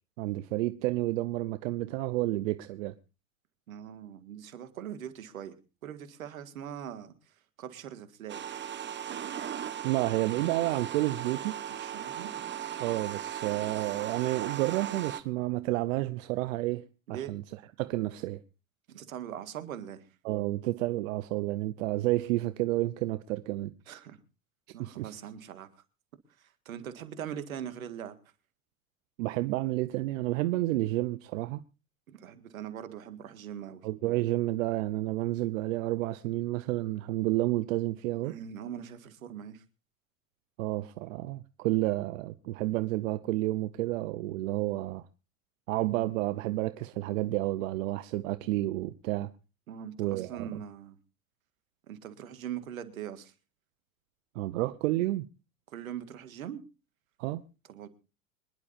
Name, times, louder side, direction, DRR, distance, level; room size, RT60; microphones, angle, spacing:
voice 1, 0.2-2.9 9.8-11.6 12.8-18.4 20.2-23.7 24.8-25.1 29.2-31.6 33.8-38.3 40.6-45.0 45.7-49.3 50.0-50.6 54.3-55.3 57.2-57.4, right 17 dB, 70° right, 0.8 m, -30 dB
voice 2, 3.7-5.5 5.8-7.1 7.6-8.4 11.7-12.3 17.1-17.3 18.9-20.0 23.9-24.2 24.7-25.7 26.7-28.2 32.1-33.8 38.2-39.6 49.7-51.0 51.9-53.3 55.7-56.6 57.7-57.9, right 9 dB, 85° right, 1.8 m, -41 dB
sound 1, 8.3-15.2, right 9 dB, 25° right, 1.2 m, -37 dB
25.5 x 11.0 x 2.6 m
hypercardioid pair, 95°, 40 cm